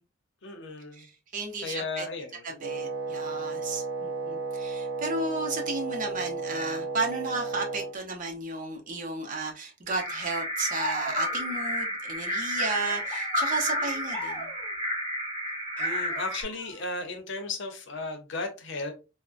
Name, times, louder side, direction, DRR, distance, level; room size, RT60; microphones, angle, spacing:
voice 1, 0.4-1.1 1.6-2.6 15.8-18.9, left 3 dB, 65° left, 0.7 m, -35 dB
voice 2, 0.9-2.1 2.4-14.5, right 3 dB, 40° right, 0.7 m, -33 dB
Wind instrument woodwind instrument, 2.6-8.0, right 4 dB, 75° right, 0.7 m, -33 dB
sound 1, 10.0-16.4, equal, 25° right, 1.8 m, -31 dB
sound 2, 10.7-11.5 12.7-14.7 15.8-16.9, left 1 dB, 5° left, 1.0 m, -39 dB
3.6 x 2.1 x 2.4 m
head